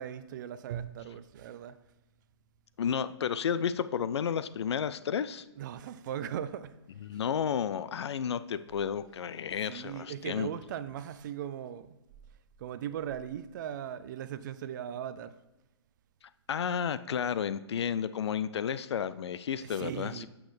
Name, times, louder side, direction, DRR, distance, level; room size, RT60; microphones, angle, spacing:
voice 1, 0.0-1.8 5.6-7.2 9.6-12.0 12.6-15.4 19.6-20.3, right 10 dB, 45° right, 0.4 m, -39 dB
voice 2, 2.8-5.5 7.0-10.5 16.5-20.3, left 7 dB, 70° left, 0.4 m, -32 dB
8.3 x 6.2 x 3.2 m
hypercardioid pair, 135°, 15 cm